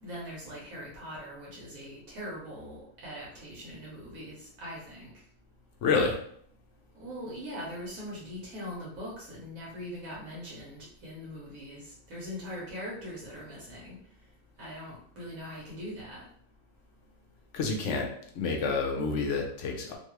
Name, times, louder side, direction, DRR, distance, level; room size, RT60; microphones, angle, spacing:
voice 1, 0.0-5.1 7.0-14.0 14.6-16.3, equal, 70° right, -5 dB, 1.2 m, -41 dB
voice 2, 5.8-6.2 17.5-18.1 18.3-20.0, left 4 dB, 65° left, 1 dB, 0.8 m, -28 dB
2.9 x 2.3 x 2.9 m, 0.63 s
omnidirectional pair, 1.5 m